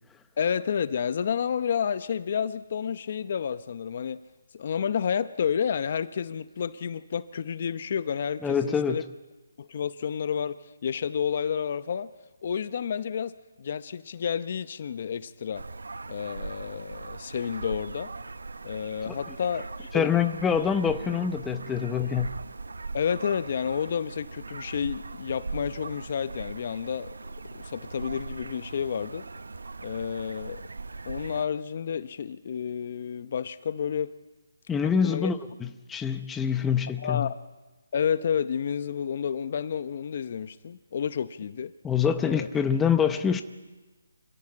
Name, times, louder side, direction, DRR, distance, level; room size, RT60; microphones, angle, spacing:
voice 1, 0.4-4.2 4.5-9.0 9.6-12.1 12.4-15.6 16.1-18.1 18.6-20.1 22.9-27.1 27.5-29.2 29.8-30.6 31.1-34.1 35.0-35.3 37.0-37.4 37.9-41.7 42.2-42.5, left 7 dB, 45° left, 14 dB, 0.8 m, -30 dB
voice 2, 8.4-9.0 19.9-22.3 34.7-37.3 41.8-43.4, left 7 dB, 10° left, 8 dB, 0.8 m, -25 dB
sound 1, 15.5-31.4, right 3 dB, 85° right, 0.9 m, -39 dB
26.5 x 16.5 x 8.6 m, 1.2 s
hypercardioid pair, 160°, 0 cm